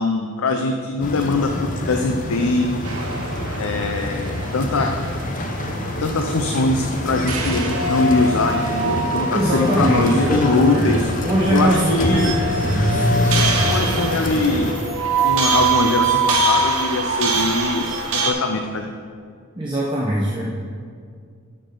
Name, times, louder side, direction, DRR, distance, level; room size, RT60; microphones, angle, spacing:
voice 1, 0.0-2.8 3.6-5.0 6.0-11.1 11.5-12.3 13.7-14.7 15.2-18.9, left 3 dB, 75° left, 4 dB, 0.6 m, -22 dB
sound 1, 1.0-14.7, left 1 dB, 35° left, 0.7 m, -25 dB
sound 2, 2.8-18.3, right 3 dB, 80° right, 1.2 m, -24 dB
voice 2, 9.3-10.9 11.2-12.3 12.6-13.1 19.6-20.4, right 1 dB, 20° right, -6 dB, 1.0 m, -21 dB
sound 3, 11.2-18.1, right 1 dB, 5° left, 2.0 m, -34 dB
12.5 x 6.9 x 3.9 m, 2.1 s
head